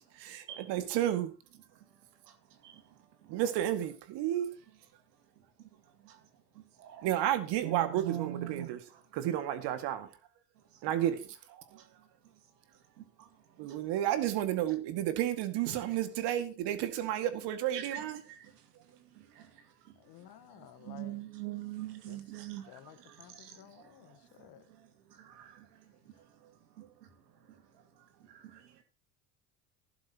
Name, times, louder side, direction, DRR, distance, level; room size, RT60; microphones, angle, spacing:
voice 1, 0.2-1.3 3.3-4.5 7.0-8.8 9.1-10.1 10.8-11.6 13.6-18.2, right 12 dB, 60° right, 2.1 m, -32 dB
voice 2, 6.8-7.1 7.6-8.7 11.7-11.8 13.2-13.3 15.7-15.8 17.7-18.5 19.2-19.5 19.9-20.0 20.8-23.6 25.2-25.6 26.8-26.9 27.5-27.6 28.3-28.6, right 13 dB, 80° right, 2.2 m, -42 dB
voice 3, 20.0-21.2 22.1-22.2 22.7-24.6, left 12 dB, 50° left, 1.4 m, -54 dB
15.0 x 11.5 x 2.9 m
hypercardioid pair, 75°, 47 cm